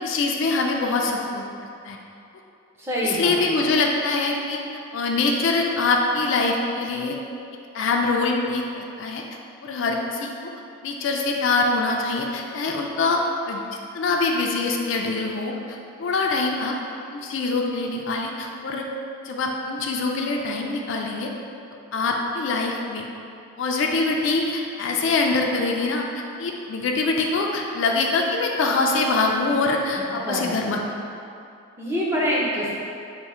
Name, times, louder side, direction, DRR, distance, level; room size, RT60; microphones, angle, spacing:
voice 1, 0.0-1.4 1.8-2.0 3.0-4.6 4.9-7.2 7.7-9.2 9.6-10.5 10.8-13.6 13.9-16.7 17.1-18.9 19.2-21.3 21.9-23.1 23.6-30.8, left 3 dB, 60° left, 1 dB, 0.3 m, -24 dB
voice 2, 2.8-3.4 30.3-30.5 31.8-32.8, equal, 10° right, -6 dB, 0.5 m, -25 dB
3.5 x 2.1 x 4.2 m, 2.6 s
head